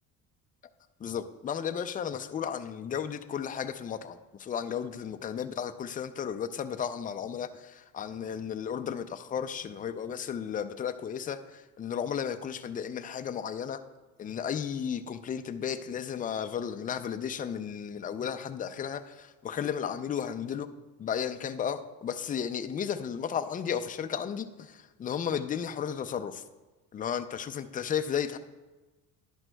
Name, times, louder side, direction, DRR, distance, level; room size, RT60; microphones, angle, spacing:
voice 1, 1.0-13.8 14.2-20.7 21.0-26.4 26.9-28.4, left 8 dB, 25° left, 9 dB, 0.4 m, -34 dB
11.5 x 10.5 x 2.2 m, 1.2 s
cardioid pair, 120°, 36 cm